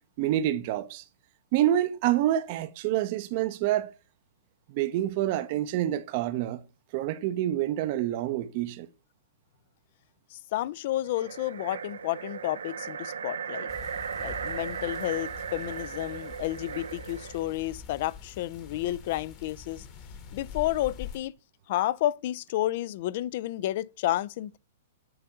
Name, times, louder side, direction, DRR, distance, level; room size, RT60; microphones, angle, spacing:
voice 1, 0.2-1.0 1.5-3.9 4.7-6.6 6.9-8.9, right 12 dB, 45° right, 0.6 m, -27 dB
voice 2, 10.3-13.7 14.2-19.8 20.3-21.3 21.7-24.6, left 14 dB, 55° left, 0.3 m, -31 dB
sound 1, 11.0-17.5, right 7 dB, 90° right, 0.6 m, -37 dB
sound 2, 13.7-21.2, left 6 dB, 35° left, 1.2 m, -45 dB
7.7 x 2.6 x 5.4 m
hypercardioid pair, 135°, 0 cm